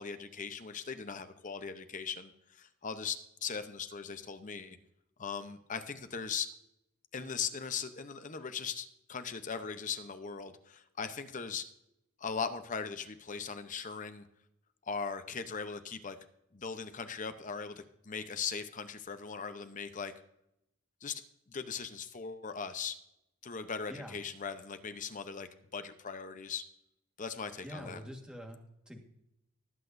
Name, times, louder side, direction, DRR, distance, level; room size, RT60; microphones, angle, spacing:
voice 1, 0.0-4.8 5.2-6.5 7.1-11.7 12.2-14.2 14.9-16.2 16.5-20.1 21.0-21.2 21.5-23.0 23.4-26.6 27.2-28.0, left 6 dB, 35° left, 10 dB, 0.7 m, -39 dB
voice 2, 27.6-29.0, equal, 5° right, 2 dB, 1.5 m, -45 dB
20.0 x 8.2 x 2.6 m, 0.82 s
head